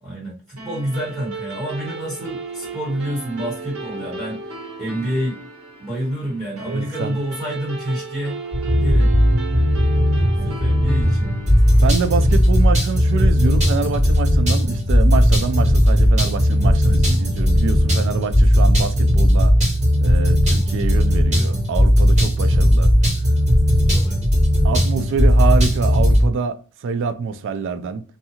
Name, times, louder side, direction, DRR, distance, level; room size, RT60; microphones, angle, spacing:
voice 1, 0.0-5.4 5.8-8.4 8.7-9.1 10.4-11.3 23.8-24.2, right 1 dB, 10° right, 1.3 m, -28 dB
sound 1, 0.6-13.3, right 3 dB, 85° right, 0.9 m, -35 dB
voice 2, 6.7-7.2 11.8-19.5 20.0-22.9 24.6-28.0, right 5 dB, 60° right, 0.3 m, -26 dB
sound 2, 8.5-26.3, equal, 35° right, 1.1 m, -16 dB
2.7 x 2.3 x 2.8 m
head